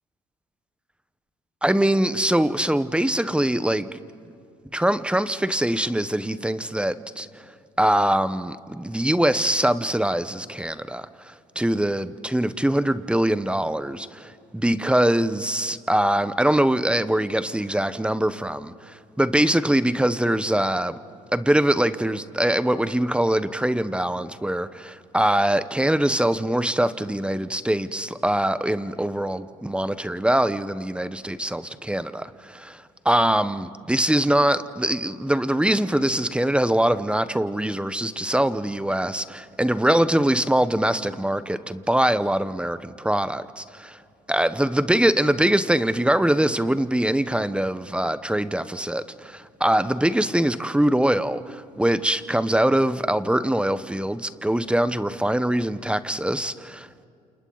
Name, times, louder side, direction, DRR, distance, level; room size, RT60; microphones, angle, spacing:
voice 1, 1.6-4.0 4.7-7.4 7.8-21.0 21.3-44.0 44.3-57.0, right 1 dB, 5° right, 13 dB, 1.0 m, -23 dB
30.0 x 28.5 x 4.1 m, 2.4 s
supercardioid pair, 70°, 16 cm